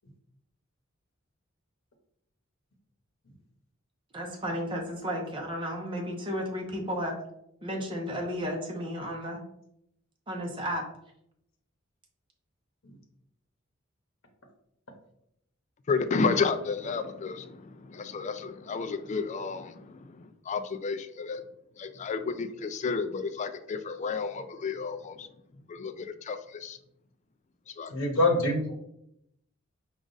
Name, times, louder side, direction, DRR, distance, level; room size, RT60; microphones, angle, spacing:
voice 1, 4.1-7.2 7.6-9.4 10.3-10.8, equal, 25° right, 0 dB, 0.8 m, -33 dB
voice 2, 15.9-17.6 17.9-20.0 20.5-21.4 21.8-25.3 25.7-26.8 27.8-27.9, left 4 dB, 35° left, 10 dB, 0.3 m, -31 dB
voice 3, 27.9-28.7, left 2 dB, 75° left, 2 dB, 0.8 m, -25 dB
5.0 x 2.4 x 3.8 m, 0.76 s
head